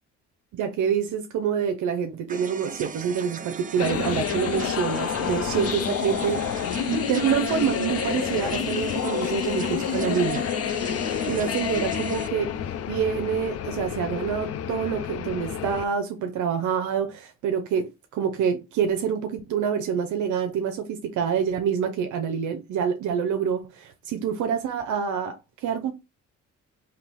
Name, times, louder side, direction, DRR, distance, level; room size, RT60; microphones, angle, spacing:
voice 1, 0.5-6.4 6.9-10.4 11.3-12.5 12.9-25.9, right 7 dB, 75° right, 0.6 m, -27 dB
sound 1, 2.3-12.3, right 5 dB, 30° right, 0.5 m, -38 dB
sound 2, 3.8-15.8, left 9 dB, 55° left, 0.5 m, -29 dB
3.8 x 2.8 x 3.4 m
cardioid pair, 90°, 30 cm